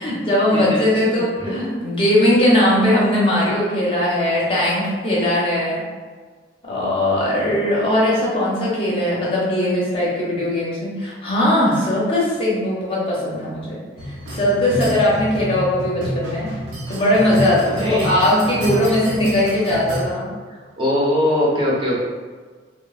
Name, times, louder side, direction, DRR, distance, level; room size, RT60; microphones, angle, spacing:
voice 1, 0.0-5.8 6.6-13.8 14.3-16.5 16.9-20.3, left 1 dB, 30° left, -6 dB, 0.6 m, -19 dB
voice 2, 0.5-1.2 17.7-18.1 20.5-22.0, left 1 dB, 25° right, -6 dB, 0.5 m, -22 dB
sound 1, 14.0-20.1, equal, 90° right, 0.6 m, -28 dB
3.1 x 2.1 x 2.3 m, 1.5 s
head